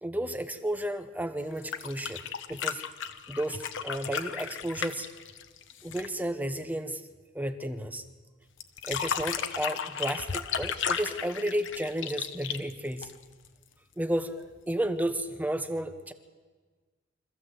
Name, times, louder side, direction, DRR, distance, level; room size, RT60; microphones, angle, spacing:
voice 1, 0.0-2.8 3.3-5.1 5.8-7.0 7.3-8.0 8.9-13.1 14.0-16.1, right 1 dB, 10° right, 9 dB, 1.1 m, -32 dB
sound 1, 1.5-6.2 8.6-13.5 14.9-15.0, left 7 dB, 65° left, 1.1 m, -34 dB
24.5 x 15.0 x 7.8 m, 1.4 s
head